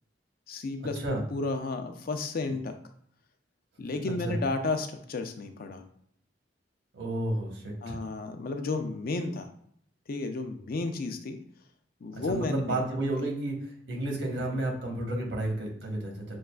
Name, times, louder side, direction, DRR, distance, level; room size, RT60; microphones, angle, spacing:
voice 1, 0.5-1.0 1.3-2.7 3.8-5.8 7.8-9.5 10.1-11.4 12.0-12.8, left 3 dB, 55° left, 7 dB, 0.5 m, -32 dB
voice 2, 4.0-4.3 6.9-8.0 12.1-16.4, right 1 dB, 90° right, 1 dB, 1.1 m, -32 dB
6.2 x 2.4 x 2.3 m, 0.66 s
head